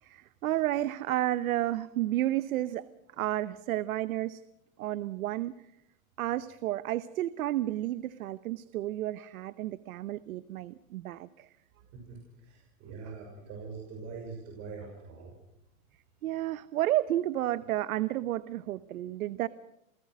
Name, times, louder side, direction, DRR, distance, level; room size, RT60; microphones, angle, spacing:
voice 1, 0.0-2.9 3.2-4.4 4.8-5.5 6.2-11.5 12.9-13.0 16.2-19.5, right 14 dB, 85° right, 15 dB, 1.0 m, -31 dB
voice 2, 12.5-15.3, right 5 dB, 40° right, 0 dB, 6.4 m, -43 dB
28.5 x 18.5 x 6.3 m, 0.82 s
supercardioid pair, 150°, 41 cm